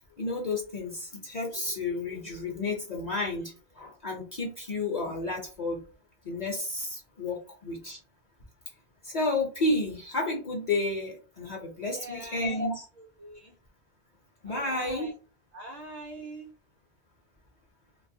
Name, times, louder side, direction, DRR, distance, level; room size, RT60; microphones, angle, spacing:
voice 1, 0.2-5.8 6.3-7.4 7.6-8.0 9.0-12.8 14.4-15.1, left 2 dB, 50° left, 0 dB, 0.6 m, -31 dB
voice 2, 11.9-12.7 13.0-13.5 14.4-15.1 15.5-16.5, right 1 dB, 55° right, 2 dB, 0.5 m, -43 dB
2.4 x 2.3 x 2.6 m, 0.36 s
omnidirectional pair, 1.1 m